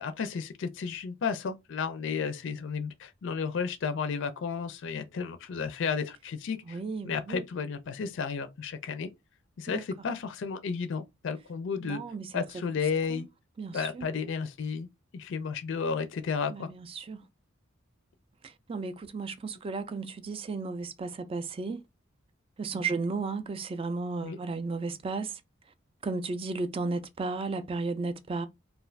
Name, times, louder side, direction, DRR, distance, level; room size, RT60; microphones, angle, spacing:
voice 1, 0.0-6.8 7.0-9.1 9.6-12.0 12.3-13.3 13.7-14.9 15.1-16.7 22.7-22.9 24.2-24.4, left 5 dB, 65° left, 0.4 m, -33 dB
voice 2, 6.6-7.4 9.7-9.8 11.8-12.3 13.1-13.2 13.6-14.1 16.5-17.2 18.4-21.8 22.6-25.4 26.0-28.5, right 3 dB, 30° right, 0.3 m, -34 dB
2.4 x 2.4 x 3.1 m
head